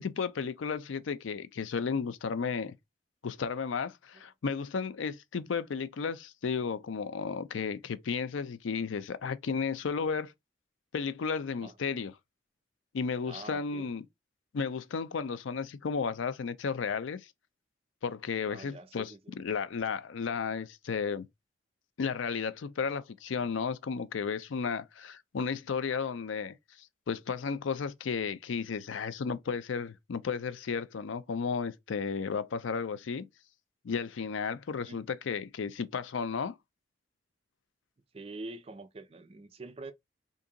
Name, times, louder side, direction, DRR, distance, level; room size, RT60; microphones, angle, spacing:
voice 1, 0.0-2.7 3.2-10.3 10.9-12.1 12.9-14.0 14.5-17.3 18.0-21.3 22.0-33.3 33.8-36.5, left 5 dB, 80° left, 0.4 m, -33 dB
voice 2, 13.2-13.9 18.5-19.2 34.7-35.0 38.1-39.9, right 2 dB, 30° right, 0.4 m, -45 dB
2.7 x 2.6 x 3.8 m
head